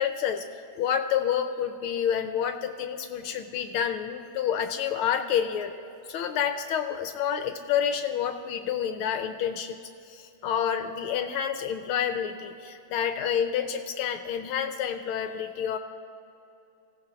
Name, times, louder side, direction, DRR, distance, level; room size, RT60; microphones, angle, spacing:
voice 1, 0.0-5.7 6.1-9.8 10.1-15.8, left 8 dB, 85° left, 8 dB, 1.5 m, -29 dB
25.0 x 16.5 x 2.5 m, 2.7 s
omnidirectional pair, 2.4 m